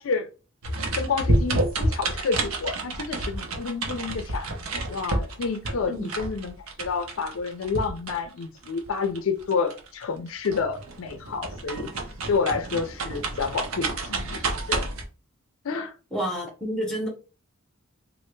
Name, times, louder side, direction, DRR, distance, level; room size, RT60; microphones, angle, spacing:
sound 1, 0.6-10.2 10.4-15.0, right 2 dB, 90° right, 0.7 m, -29 dB
voice 1, 1.0-4.5 4.9-11.9 12.3-14.9 15.6-15.9, left 5 dB, 70° left, 0.4 m, -29 dB
voice 2, 16.1-17.1, equal, 5° left, 1.1 m, -29 dB
3.2 x 2.5 x 3.1 m
head